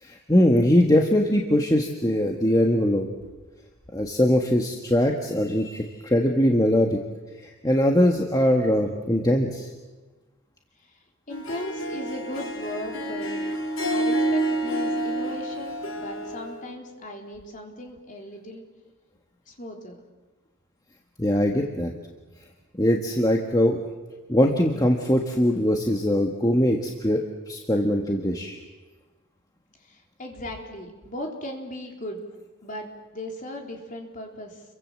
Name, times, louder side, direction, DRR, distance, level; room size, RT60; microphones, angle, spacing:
voice 1, 0.0-3.1 3.9-7.0 7.4-9.7 21.2-21.9 22.8-23.8 24.3-28.6, left 1 dB, 15° left, 2 dB, 1.6 m, -21 dB
Harp, 11.3-16.6, right 1 dB, 60° left, 3.0 m, -28 dB
voice 2, 11.3-13.4 13.9-18.7 19.5-20.0 29.8-32.3 32.6-34.6, left 1 dB, 35° left, 2 dB, 3.9 m, -37 dB
29.5 x 23.5 x 7.6 m, 1.2 s
head